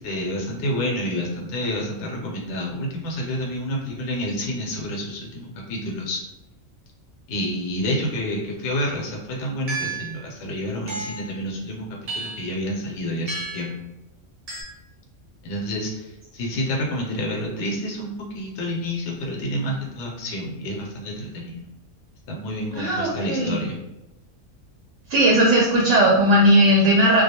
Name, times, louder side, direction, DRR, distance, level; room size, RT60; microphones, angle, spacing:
voice 1, 0.0-6.2 7.3-11.9 12.1-13.8 15.4-21.6 22.3-23.8, equal, 70° left, -2 dB, 0.9 m, -29 dB
sound 1, 9.7-10.2 10.9-11.3 12.1-12.5 13.3-13.7 14.5-14.6, right 3 dB, 45° right, 0.5 m, -31 dB
voice 2, 22.8-23.6 25.1-27.2, right 1 dB, 75° right, -2 dB, 0.9 m, -17 dB
2.3 x 2.2 x 2.8 m, 0.94 s
omnidirectional pair, 1.3 m